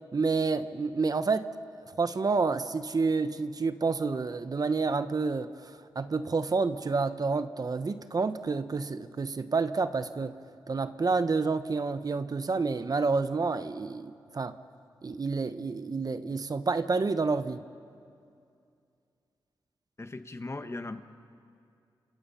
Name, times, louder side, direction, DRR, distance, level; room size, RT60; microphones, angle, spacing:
voice 1, 0.1-1.5 2.0-10.3 10.7-14.5 15.0-17.6, right 4 dB, 45° right, 11 dB, 1.0 m, -29 dB
voice 2, 20.0-21.0, left 2 dB, 30° left, 8 dB, 1.4 m, -38 dB
29.0 x 27.5 x 5.8 m, 2.4 s
cardioid pair, 60°, 9 cm